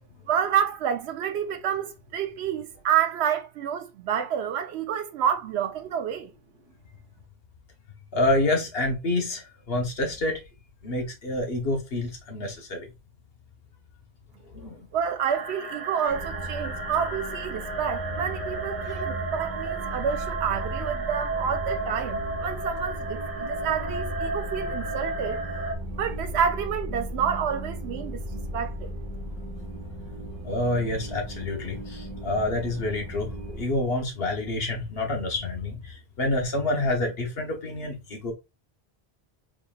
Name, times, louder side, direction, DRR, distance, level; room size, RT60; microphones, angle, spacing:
voice 1, 0.3-6.3 14.9-25.4 26.0-28.9, right 8 dB, 85° right, 0.8 m, -28 dB
voice 2, 8.1-10.4 10.8-12.9 14.5-14.8 18.9-19.2 30.4-38.3, left 2 dB, 70° left, 1.3 m, -28 dB
sound 1, 15.3-25.7, right 3 dB, 35° right, 0.9 m, -33 dB
sound 2, 16.1-33.6, equal, 5° right, 1.9 m, -36 dB
3.7 x 3.6 x 2.4 m
omnidirectional pair, 1.1 m